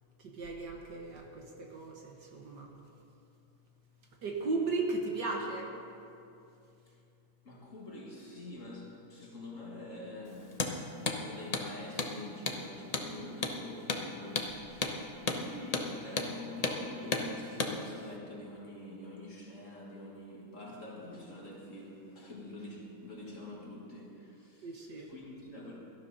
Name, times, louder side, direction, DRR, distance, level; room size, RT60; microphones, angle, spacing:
voice 1, 0.2-2.7 4.2-5.7 24.6-25.1, right 3 dB, 55° right, 1 dB, 1.8 m, -36 dB
voice 2, 7.4-10.7 11.1-25.8, left 1 dB, 40° left, -2 dB, 2.0 m, -46 dB
Hammer, 10.5-10.7 11.1-11.2 11.5-11.7 12.0-12.1 12.5-12.6 12.9-13.1 13.4-13.6 13.9-14.0 14.4-14.5 14.8-15.0 15.3-15.4 15.7-15.9 16.2-16.3 16.6-16.8 17.1-17.3 17.6-17.7, left 3 dB, 80° left, 0.3 m, -32 dB
17.5 x 13.0 x 4.1 m, 2.7 s
omnidirectional pair, 2.3 m